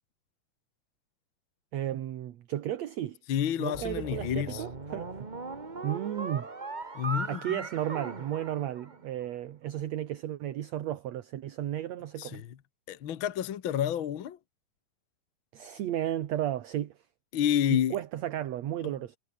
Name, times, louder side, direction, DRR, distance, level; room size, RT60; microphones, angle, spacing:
voice 1, 1.7-3.2 3.6-5.3 5.8-6.5 7.3-12.4 15.5-16.9 17.7-19.2, right 12 dB, 60° right, 2.2 m, -34 dB
voice 2, 3.3-4.6 6.9-7.6 12.2-12.5 12.9-14.4 17.3-17.9 18.8-19.0, left 10 dB, 60° left, 1.4 m, -29 dB
sound 1, 3.7-9.2, right 3 dB, 25° right, 1.0 m, -39 dB
omnidirectional pair, 3.9 m